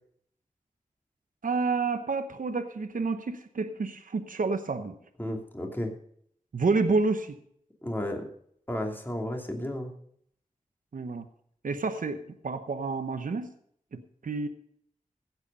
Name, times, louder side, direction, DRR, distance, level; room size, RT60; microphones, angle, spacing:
voice 1, 1.4-4.9 6.5-7.4 10.9-11.3 11.6-13.5 13.9-14.5, right 4 dB, 80° right, 9 dB, 0.9 m, -29 dB
voice 2, 5.2-5.9 7.8-8.3 8.7-9.9, left 1 dB, 15° left, 1 dB, 2.7 m, -33 dB
15.5 x 8.0 x 5.3 m, 0.67 s
wide cardioid pair, 60°, 14 cm